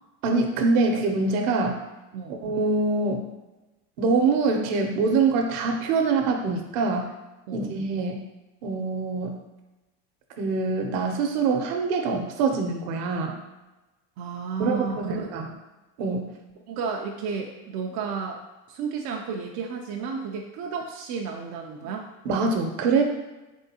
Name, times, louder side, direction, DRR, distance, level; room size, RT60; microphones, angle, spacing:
voice 1, 0.2-1.8 2.3-3.3 4.0-7.1 7.5-8.2 8.6-9.4 10.4-13.4 14.6-15.5 16.0-16.3 22.2-23.0, right 4 dB, 60° right, 3 dB, 0.8 m, -24 dB
voice 2, 14.2-15.3 16.7-18.4 18.7-22.1, right 6 dB, 40° right, 1 dB, 0.4 m, -32 dB
3.8 x 3.5 x 2.8 m, 1.1 s
supercardioid pair, 130°, 46 cm